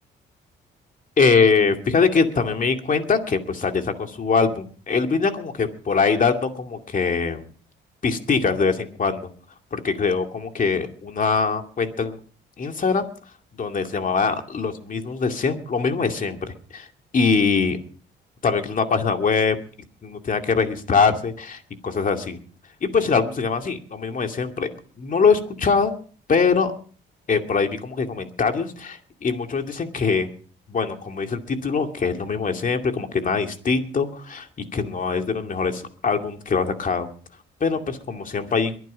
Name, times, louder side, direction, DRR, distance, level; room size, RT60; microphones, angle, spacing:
voice 1, 1.2-7.5 8.0-9.3 9.7-12.2 12.6-13.1 13.6-16.9 17.1-17.8 18.4-19.6 20.0-22.4 22.8-24.7 25.0-25.9 26.3-26.7 27.3-30.3 30.7-34.5 34.7-37.1 37.6-38.7, left 5 dB, 40° left, 5 dB, 2.4 m, -22 dB
22.5 x 9.4 x 5.1 m, 0.43 s
cardioid pair, 90°, 20 cm